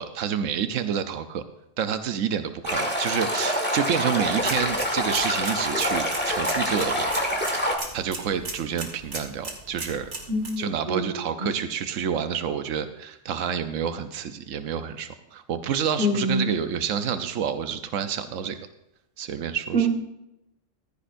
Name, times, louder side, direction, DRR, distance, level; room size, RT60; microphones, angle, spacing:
voice 1, 0.0-1.4 1.8-7.1 7.9-10.1 10.6-18.6 19.2-19.9, right 8 dB, 85° right, 9 dB, 1.1 m, -28 dB
Stream, 2.6-7.7, equal, 10° left, 1.7 m, -26 dB
sound 1, 4.4-10.5, right 2 dB, 65° right, 2.4 m, -37 dB
voice 2, 10.3-11.1 16.0-16.5 19.7-19.9, right 1 dB, 45° right, 1 dB, 1.8 m, -25 dB
15.0 x 14.5 x 2.6 m, 0.87 s
omnidirectional pair, 1.3 m